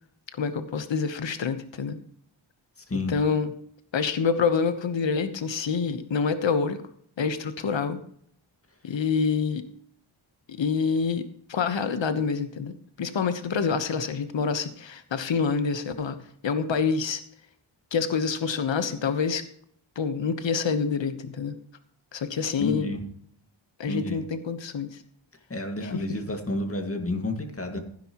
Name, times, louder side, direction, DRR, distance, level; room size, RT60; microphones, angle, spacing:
voice 1, 0.4-2.0 3.1-3.5 3.9-6.8 7.2-8.0 8.8-9.6 10.6-11.2 11.5-16.2 16.4-17.2 17.9-19.4 20.0-21.5 22.1-23.0 23.8-24.9 25.8-26.0, left 5 dB, 65° left, 10 dB, 1.2 m, -27 dB
voice 2, 22.6-23.0 23.8-24.2 25.5-27.8, left 2 dB, 30° left, 4 dB, 2.1 m, -30 dB
16.0 x 10.0 x 3.0 m, 0.63 s
wide cardioid pair, 120°, 48 cm